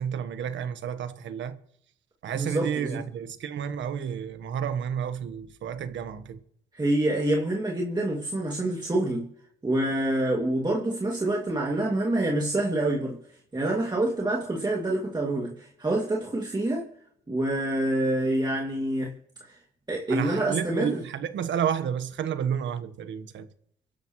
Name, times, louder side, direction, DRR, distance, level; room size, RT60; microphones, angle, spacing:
voice 1, 0.0-1.6 2.2-6.4 20.1-23.5, right 8 dB, 70° right, 1.3 m, -31 dB
voice 2, 2.3-2.9 6.7-9.3 9.6-13.2 13.5-16.9 17.3-19.1 19.4-19.6 19.9-21.0, right 1 dB, 20° right, 2.5 m, -27 dB
24.0 x 12.0 x 3.2 m
cardioid pair, 90°, 20 cm